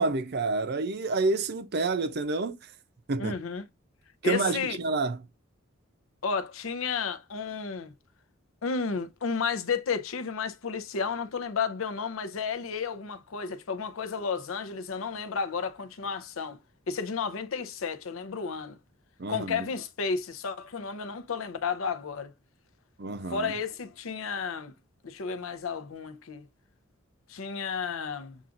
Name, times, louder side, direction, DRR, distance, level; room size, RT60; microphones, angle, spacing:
voice 1, 0.0-2.6 3.1-3.3 4.2-5.2 19.2-19.7 23.0-23.5, right 3 dB, 50° right, 0.6 m, -28 dB
voice 2, 3.2-3.7 4.2-4.8 6.2-7.9 8.6-16.6 16.9-18.8 19.3-22.3 23.3-24.7 25.0-26.4 27.3-28.4, left 5 dB, 75° left, 0.6 m, -32 dB
7.1 x 2.5 x 2.5 m
head